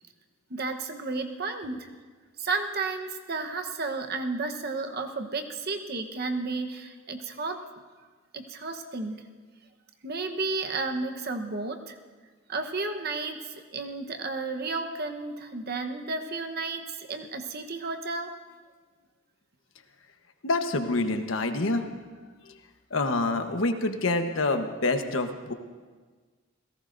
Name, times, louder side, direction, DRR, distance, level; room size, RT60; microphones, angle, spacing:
voice 1, 0.5-1.9 2.4-7.6 8.3-9.2 10.0-11.9 12.5-18.3, right 3 dB, 55° right, 5 dB, 1.1 m, -32 dB
voice 2, 20.4-21.8 22.9-25.5, left 2 dB, 85° left, 6 dB, 1.2 m, -26 dB
29.0 x 17.0 x 2.7 m, 1.4 s
head